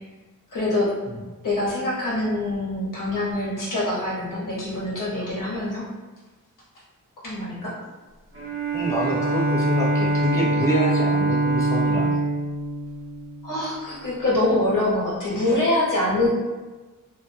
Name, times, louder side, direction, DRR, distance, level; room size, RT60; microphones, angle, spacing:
voice 1, 0.5-0.9 1.4-5.8 7.2-7.7 13.4-16.3, left 1 dB, 70° left, -7 dB, 1.1 m, -24 dB
Bowed string instrument, 8.3-13.9, right 2 dB, 40° right, 0.9 m, -24 dB
voice 2, 8.7-12.2, equal, 10° left, -5 dB, 0.4 m, -27 dB
2.4 x 2.2 x 2.6 m, 1.2 s
wide cardioid pair, 90°, 33 cm